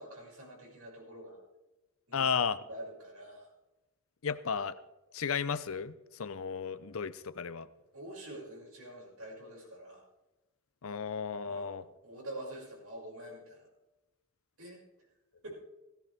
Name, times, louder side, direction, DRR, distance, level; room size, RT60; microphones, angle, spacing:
voice 1, 0.0-1.4 2.1-2.3 2.7-3.5 7.9-10.0 11.4-13.7 14.6-14.8 15.4-15.6, right 1 dB, 90° right, -3 dB, 6.3 m, -46 dB
voice 2, 2.1-2.6 4.2-4.8 5.1-7.7 10.8-11.8, left 6 dB, 70° left, 14 dB, 0.7 m, -34 dB
16.0 x 16.0 x 3.5 m, 1.0 s
head